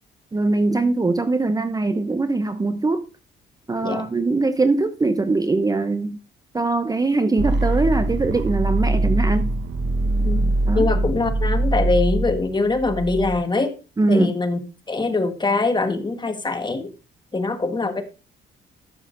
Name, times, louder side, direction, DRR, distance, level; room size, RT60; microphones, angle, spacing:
voice 1, 0.3-3.0 3.7-6.2 6.5-9.5 10.7-10.9 14.0-14.3, right 3 dB, 20° right, 0.6 m, -21 dB
sound 1, 7.4-13.4, right 2 dB, 65° right, 1.1 m, -22 dB
voice 2, 10.2-13.7 14.1-14.6 14.9-16.9 17.3-18.0, left 3 dB, 20° left, 1.3 m, -23 dB
11.5 x 6.9 x 2.5 m
cardioid pair, 90°, 20 cm